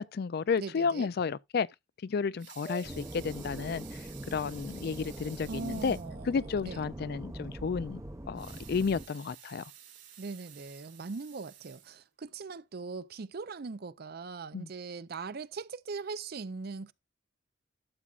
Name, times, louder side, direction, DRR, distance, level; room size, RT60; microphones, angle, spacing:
voice 1, 0.0-1.7 2.0-3.8 4.3-6.0 6.3-8.0 8.3-9.6 14.5-14.7, left 5 dB, 55° left, 0.4 m, -32 dB
voice 2, 0.6-1.1 5.5-6.9 10.2-16.9, right 4 dB, 55° right, 0.5 m, -40 dB
Water tap faucet / Sink (filling or washing) / Liquid, 2.2-6.2 6.6-6.7 7.0-7.1 8.2-12.4 13.0-13.1, right 10 dB, 75° right, 2.9 m, -53 dB
Sub - Sub Med, 2.7-5.6, right 2 dB, 20° left, 0.7 m, -51 dB
sound 1, 2.8-9.1, right 1 dB, 15° right, 0.7 m, -43 dB
12.5 x 7.4 x 2.4 m
head